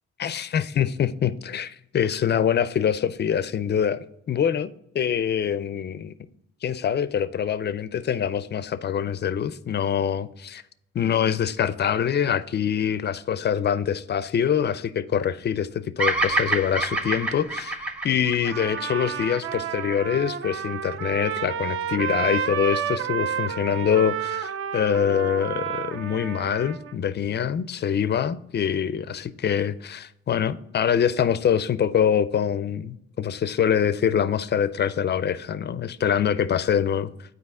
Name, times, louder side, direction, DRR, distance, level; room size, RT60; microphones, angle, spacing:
voice 1, 0.2-6.1 6.6-10.6 10.9-37.1, left 8 dB, 35° left, 16 dB, 0.4 m, -25 dB
Bird vocalization bird call bird song, 16.0-20.3, right 2 dB, 5° right, 0.7 m, -27 dB
Trumpet, 18.4-26.9, right 8 dB, 45° right, 0.4 m, -30 dB
8.2 x 4.7 x 3.6 m, 0.78 s
cardioid pair, 90°, 30 cm